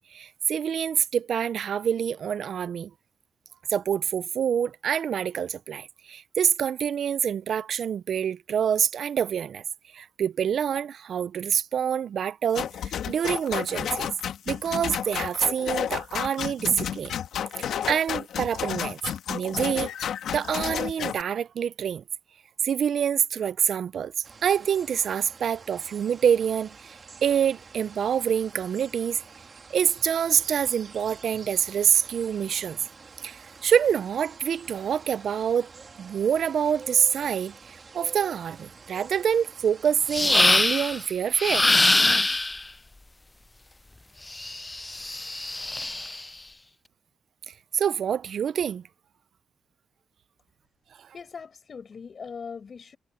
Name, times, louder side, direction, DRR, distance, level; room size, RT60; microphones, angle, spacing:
voice 1, 0.0-2.9 3.7-9.6 9.9-14.1 14.5-17.1 17.6-19.0 19.3-19.9 20.3-22.0 22.6-24.1 24.4-27.0 27.2-29.2 29.7-32.8 33.2-35.7 36.0-41.7 47.5-48.8, right 8 dB, 60° right, 0.4 m, -26 dB
sound 1, 12.5-21.2, left 9 dB, 90° left, 1.4 m, -31 dB
sound 2, 24.2-41.1, right 4 dB, 35° right, 1.7 m, -48 dB
sound 3, 40.1-41.0 41.4-42.6 44.3-46.2, left 2 dB, 15° left, 0.3 m, -23 dB
voice 2, 51.1-53.0, left 5 dB, 40° left, 7.5 m, -40 dB
wide cardioid pair, 145°, 0 cm